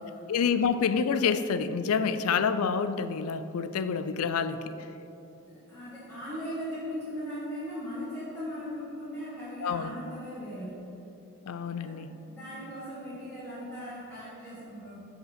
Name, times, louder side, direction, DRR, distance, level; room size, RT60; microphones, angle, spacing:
voice 1, 0.3-4.9 9.6-9.9 11.5-12.1, left 6 dB, 80° left, 11 dB, 0.4 m, -28 dB
voice 2, 5.5-10.8 11.6-11.9 12.3-15.0, equal, 5° left, -14 dB, 1.7 m, -38 dB
6.3 x 5.0 x 5.1 m, 2.8 s
head